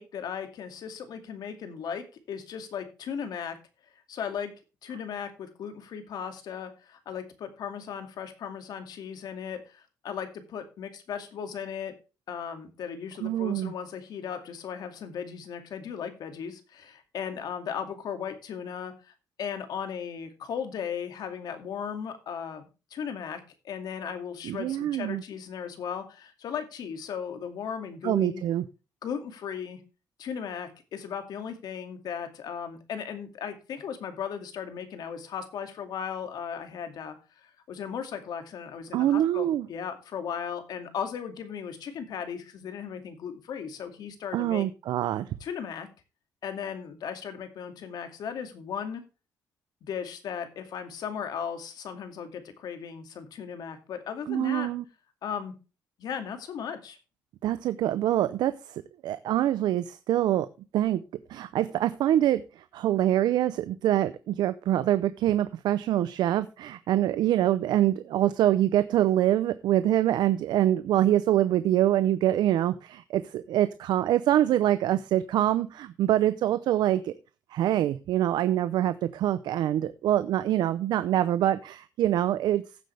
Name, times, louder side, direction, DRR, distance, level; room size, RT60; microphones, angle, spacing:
voice 1, 0.0-3.6 4.1-4.5 4.8-11.9 12.3-19.1 19.4-28.4 29.0-29.8 30.2-44.7 45.4-45.9 46.4-49.0 49.8-54.7 55.2-55.6 56.0-57.0, left 7 dB, 65° left, 7 dB, 2.3 m, -36 dB
voice 2, 13.2-13.7 24.4-25.2 28.0-28.6 38.9-39.7 44.3-45.3 54.3-54.8 57.4-60.5 60.7-61.0 61.3-77.1 77.5-82.6, right 12 dB, 80° right, 13 dB, 0.6 m, -25 dB
15.0 x 7.7 x 3.4 m, 0.32 s
cardioid pair, 135°, 7 cm